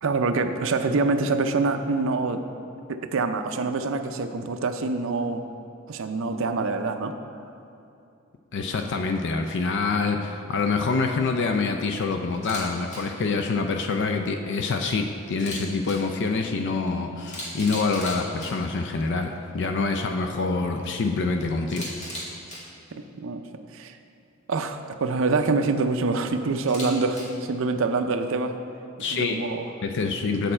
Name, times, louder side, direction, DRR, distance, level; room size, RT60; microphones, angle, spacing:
voice 1, 0.0-2.4 2.9-5.4 5.9-7.2 22.9-23.5 23.7-24.0 24.5-28.5 29.0-29.7, right 3 dB, 65° right, 7 dB, 0.5 m, -25 dB
voice 2, 8.5-21.9 29.0-29.4 29.8-30.5, left 4 dB, 55° left, 5 dB, 0.4 m, -26 dB
Camera, 12.3-12.6 12.9-13.0 15.3-15.9 16.9-17.0 17.3-18.5 21.7-22.6 26.6-27.2, equal, 35° left, 1.8 m, -36 dB
7.7 x 6.7 x 4.3 m, 2.6 s
head